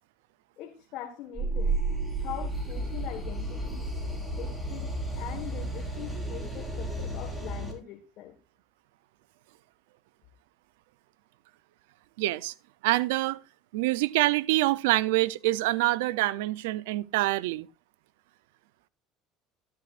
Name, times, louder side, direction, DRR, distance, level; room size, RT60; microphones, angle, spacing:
voice 1, 0.6-1.8 2.2-3.8 4.4-4.9 5.1-8.3, left 11 dB, 65° left, 1.6 m, -42 dB
sound 1, 1.3-7.7, right 2 dB, 5° right, 5.2 m, -32 dB
voice 2, 12.2-12.5 12.8-13.4 13.7-17.7, right 18 dB, 85° right, 0.5 m, -26 dB
13.0 x 12.0 x 2.5 m
supercardioid pair, 90°, 0 cm